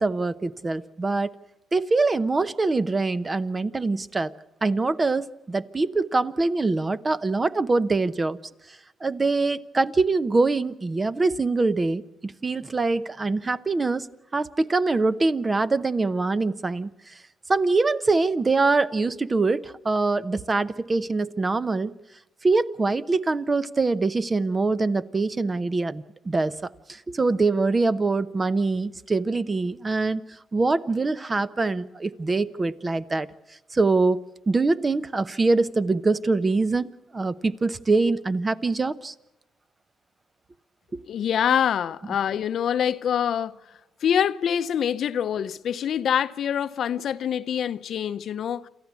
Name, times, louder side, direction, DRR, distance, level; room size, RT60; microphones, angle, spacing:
voice 1, 0.0-1.3 1.7-4.3 4.6-8.4 9.0-14.1 14.3-16.9 17.5-21.9 22.4-26.5 26.9-30.2 30.5-33.3 33.7-34.2 34.5-39.1 40.9-41.0, right 3 dB, 25° right, 0.8 m, -24 dB
voice 2, 41.1-43.5 44.0-48.6, left 9 dB, 65° left, 0.8 m, -25 dB
28.0 x 13.5 x 8.3 m
cardioid pair, 90°, 0 cm